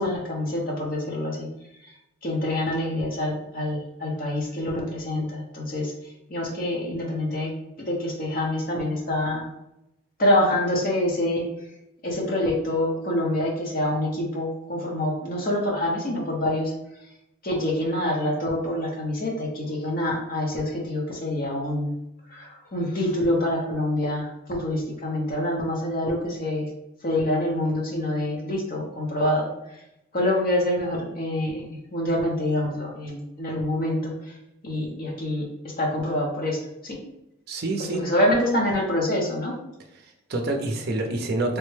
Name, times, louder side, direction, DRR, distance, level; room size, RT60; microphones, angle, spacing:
voice 1, 0.0-1.5 1.8-1.9 2.2-5.9 6.3-7.5 7.9-9.5 10.2-11.5 12.0-16.7 17.4-21.9 22.3-26.7 27.0-29.8 30.1-34.3 34.6-37.0 37.9-39.5, left 1 dB, 45° left, -1 dB, 0.7 m, -26 dB
voice 2, 37.5-38.0 40.0-41.6, right 2 dB, 50° right, 3 dB, 0.4 m, -27 dB
3.3 x 2.1 x 3.1 m, 0.85 s
head